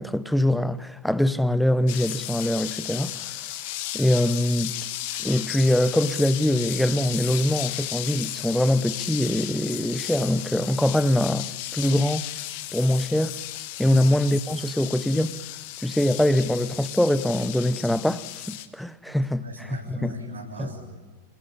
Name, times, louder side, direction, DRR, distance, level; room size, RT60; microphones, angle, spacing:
voice 1, 0.0-3.5 3.9-4.7 5.2-12.3 12.7-13.3 13.8-15.4 15.8-19.4 19.9-20.1 20.6-20.7, left 1 dB, ahead, 0.9 m, -23 dB
sound 1, 1.9-18.7, left 14 dB, 50° left, 1.9 m, -34 dB
voice 2, 19.1-21.0, left 1 dB, 75° right, 6.9 m, -39 dB
29.0 x 18.5 x 9.8 m
figure-of-eight pair, 90°, 0 cm